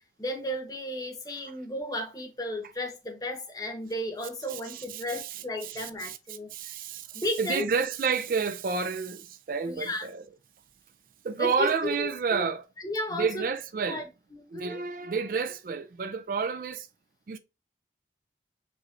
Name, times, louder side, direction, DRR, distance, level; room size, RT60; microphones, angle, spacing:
voice 1, 0.2-6.8 7.1-7.7 9.7-10.1 11.4-12.5 12.8-13.4 13.9-14.0 14.3-14.8, left 1 dB, 20° left, 0.9 m, -34 dB
voice 2, 4.5-10.2 11.2-12.7 13.1-14.0 14.5-16.9 17.3-17.4, right 5 dB, 50° right, 0.3 m, -30 dB
4.5 x 3.0 x 2.5 m
head